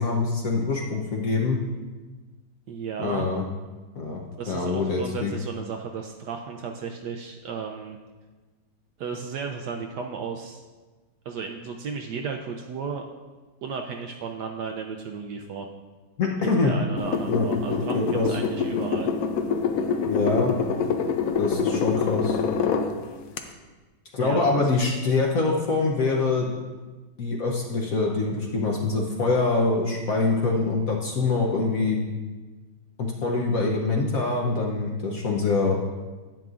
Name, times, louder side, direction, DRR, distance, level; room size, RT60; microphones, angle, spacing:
voice 1, 0.0-1.6 3.0-3.4 4.0-5.3 16.2-16.7 17.2-17.5 17.9-18.3 20.1-20.5 21.4-22.4 24.1-26.5 27.2-32.0 33.0-35.8, left 3 dB, 60° left, -1 dB, 0.9 m, -24 dB
voice 2, 2.7-3.3 4.4-8.0 9.0-10.6 11.2-13.0 13.6-15.7 16.4-19.1 24.2-24.8, right 5 dB, 70° right, 3 dB, 1.0 m, -34 dB
sound 1, 17.0-22.9 23.4-23.5, left 5 dB, 85° left, 0.7 m, -26 dB
10.5 x 9.0 x 2.4 m, 1.3 s
omnidirectional pair, 2.2 m